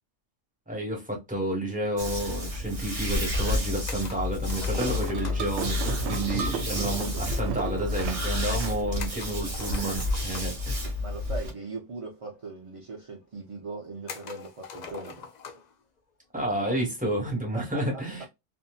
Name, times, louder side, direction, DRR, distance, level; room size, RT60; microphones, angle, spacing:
voice 1, 0.7-10.9 16.3-18.3, right 1 dB, 5° right, 1.0 m, -30 dB
sound 1, 2.0-11.5, left 2 dB, 30° right, 0.7 m, -30 dB
sound 2, 3.9-5.6 9.0-10.7 11.8-11.9 12.1-12.2 13.0-13.1 14.1-15.7, left 5 dB, 60° left, 0.4 m, -42 dB
sound 3, 4.8-9.7, right 6 dB, 85° right, 1.0 m, -35 dB
voice 2, 11.0-15.3 17.5-18.3, right 3 dB, 50° right, 0.4 m, -40 dB
2.7 x 2.6 x 2.2 m
omnidirectional pair, 1.3 m